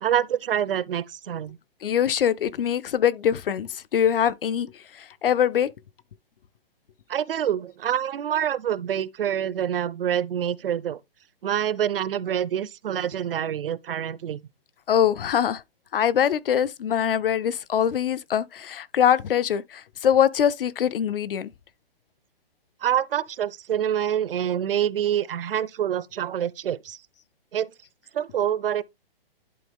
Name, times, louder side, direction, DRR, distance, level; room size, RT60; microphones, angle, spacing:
voice 1, 0.0-1.6 7.1-11.0 11.4-14.4 22.8-27.0 27.5-27.7 28.1-28.8, right 10 dB, 70° right, 0.6 m, -26 dB
voice 2, 1.8-5.7 14.9-15.6 15.9-21.5, left 9 dB, 65° left, 0.6 m, -23 dB
11.0 x 3.9 x 3.5 m
hypercardioid pair, 170°, 30 cm